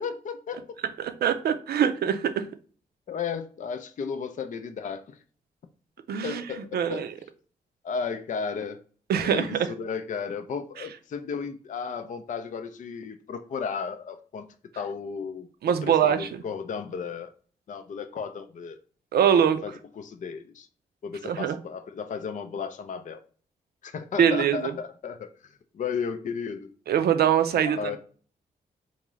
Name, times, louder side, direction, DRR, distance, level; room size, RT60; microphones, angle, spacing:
voice 1, 0.0-0.7 3.1-5.2 6.2-7.1 7.8-8.8 9.2-14.5 14.8-17.3 17.7-18.8 19.4-20.7 21.0-23.2 23.8-26.7 27.6-28.0, left 6 dB, 50° left, 0.4 m, -34 dB
voice 2, 1.0-2.5 6.1-6.4 6.7-7.1 9.1-9.5 15.6-16.3 19.1-19.6 21.2-21.6 24.2-24.6 26.9-28.0, right 8 dB, 70° right, 0.5 m, -23 dB
3.6 x 2.6 x 3.1 m
supercardioid pair, 50°, 17 cm